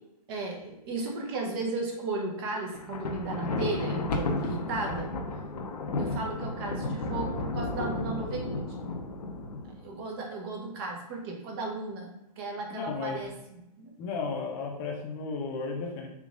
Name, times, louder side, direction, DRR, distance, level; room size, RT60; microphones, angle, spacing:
voice 1, 0.3-5.1 6.0-8.6 9.8-12.1 12.4-13.9, right 3 dB, 35° right, 0 dB, 0.8 m, -35 dB
Thunder, 2.7-10.0, left 2 dB, 80° left, 0.7 m, -33 dB
voice 2, 12.7-13.2 14.0-16.1, left 4 dB, 30° left, 0 dB, 0.6 m, -34 dB
3.6 x 3.0 x 2.4 m, 0.90 s
hypercardioid pair, 140°, 21 cm